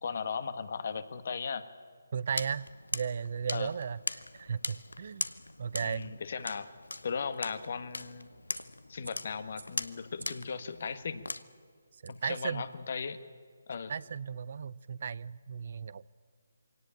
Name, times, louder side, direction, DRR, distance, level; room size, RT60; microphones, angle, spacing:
voice 1, 0.0-1.7 3.5-3.7 5.8-6.7 7.0-8.3 8.9-11.2 12.1-13.2 13.7-13.9, left 5 dB, 55° left, 11 dB, 1.5 m, -37 dB
voice 2, 2.1-2.7 2.9-5.3 5.6-6.2 12.0-12.6 13.9-16.1, right 6 dB, 50° right, 20 dB, 0.5 m, -35 dB
sound 1, 2.3-11.4, left 2 dB, 90° left, 1.0 m, -41 dB
sound 2, 3.0-12.9, right 2 dB, 85° right, 3.0 m, -58 dB
23.0 x 18.0 x 8.9 m, 2.1 s
figure-of-eight pair, 150°, 0 cm